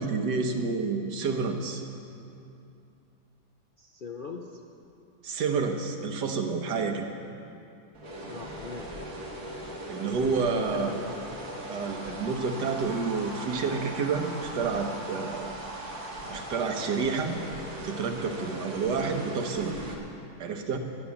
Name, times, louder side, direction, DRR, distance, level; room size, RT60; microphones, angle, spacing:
voice 1, 0.0-1.8 5.2-7.1 9.9-11.1 11.7-15.6 16.3-17.4 17.8-19.7 20.4-20.8, right 4 dB, 85° right, 4 dB, 1.7 m, -29 dB
voice 2, 3.8-4.6 8.3-8.9 10.5-11.2, left 4 dB, 55° left, 2 dB, 0.5 m, -40 dB
sound 1, 7.9-19.9, right 1 dB, 65° right, 2.3 m, -39 dB
12.5 x 10.0 x 7.0 m, 2.6 s
omnidirectional pair, 1.8 m